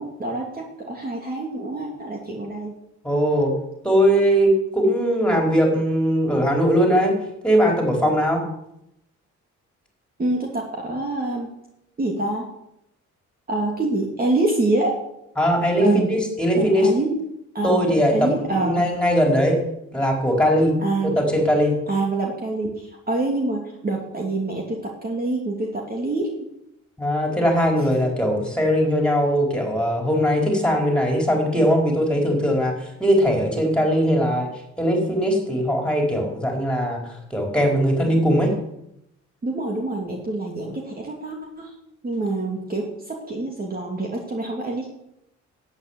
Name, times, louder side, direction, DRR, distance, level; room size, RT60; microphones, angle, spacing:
voice 1, 0.0-2.7 10.2-11.5 12.0-12.5 13.5-14.9 15.8-16.1 16.5-17.2 17.5-17.8 18.1-18.9 20.8-21.2 21.9-26.3 39.4-41.7 42.0-44.9, right 2 dB, 30° right, 0 dB, 2.7 m, -26 dB
voice 2, 3.0-3.5 3.8-7.1 7.4-8.4 15.4-16.9 17.6-19.6 19.9-20.8 21.0-21.8 27.0-34.5 34.8-37.0 37.3-38.5, equal, 5° left, 1 dB, 4.8 m, -20 dB
11.0 x 9.1 x 8.3 m, 0.82 s
cardioid pair, 90°, 30 cm